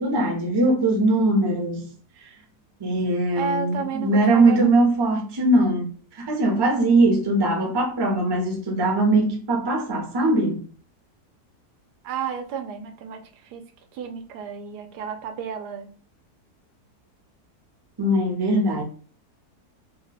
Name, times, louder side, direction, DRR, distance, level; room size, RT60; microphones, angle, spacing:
voice 1, 0.0-1.9 2.8-10.6 18.0-18.8, right 2 dB, 35° right, 0.4 m, -21 dB
voice 2, 3.3-4.8 12.0-13.6 13.9-15.9, right 6 dB, 90° right, 1.2 m, -32 dB
3.1 x 2.1 x 3.9 m
omnidirectional pair, 1.7 m